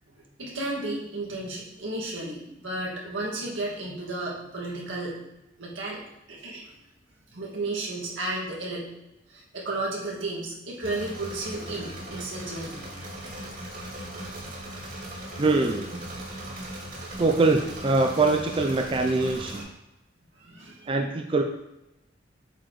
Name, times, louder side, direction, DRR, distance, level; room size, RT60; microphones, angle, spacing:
voice 1, 0.1-5.2 5.6-6.0 6.3-6.7 7.3-8.9 9.3-12.8 20.4-20.9, right 2 dB, 85° right, -4 dB, 2.0 m, -33 dB
Engine / Mechanisms, 10.8-19.6, right 1 dB, 45° right, 2.3 m, -38 dB
voice 2, 15.4-16.0 17.2-19.6 20.9-21.4, right 3 dB, 30° right, 3 dB, 0.4 m, -23 dB
7.9 x 4.7 x 3.1 m, 0.92 s
head